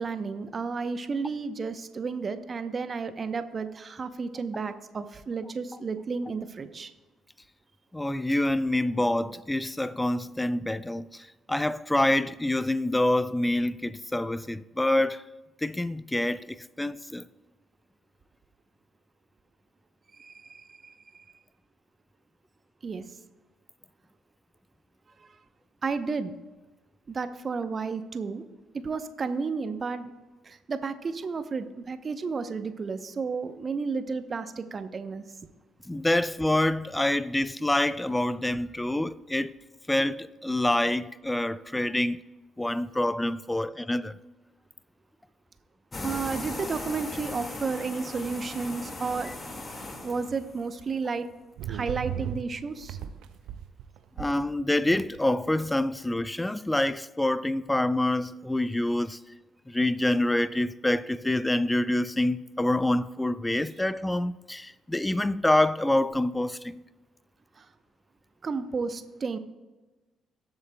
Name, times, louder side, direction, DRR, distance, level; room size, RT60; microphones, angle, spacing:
voice 1, 0.0-6.9 20.2-21.2 22.8-23.0 25.8-26.3 27.1-28.4 28.7-30.1 30.5-35.2 46.0-49.3 50.0-51.3 51.7-53.0 67.6-67.7 68.4-69.4, right 4 dB, 40° right, 0.8 m, -32 dB
voice 2, 7.9-15.2 15.6-17.2 35.9-39.5 39.9-42.2 42.6-44.2 49.2-49.3 54.2-59.2 59.7-66.8, left 1 dB, 15° left, 0.4 m, -26 dB
sound 1, 45.9-50.7, left 2 dB, 30° left, 1.9 m, -38 dB
sound 2, 50.3-50.4 51.6-55.2, right 9 dB, 70° right, 0.5 m, -36 dB
18.5 x 8.0 x 2.3 m
hypercardioid pair, 45°, 0 cm